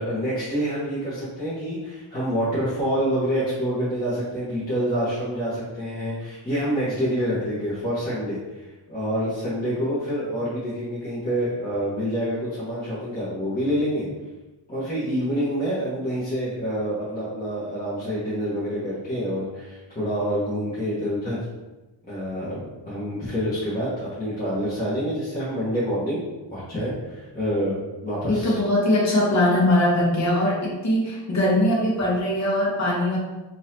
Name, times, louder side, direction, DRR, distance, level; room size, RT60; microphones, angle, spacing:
voice 1, 0.0-8.6 8.9-14.1 14.7-21.4 22.1-26.2 26.5-28.6, equal, 20° left, -11 dB, 1.2 m, -27 dB
voice 2, 28.3-33.2, left 1 dB, 35° left, -5 dB, 1.0 m, -21 dB
4.0 x 2.6 x 2.8 m, 1.1 s
wide cardioid pair, 125°, 45 cm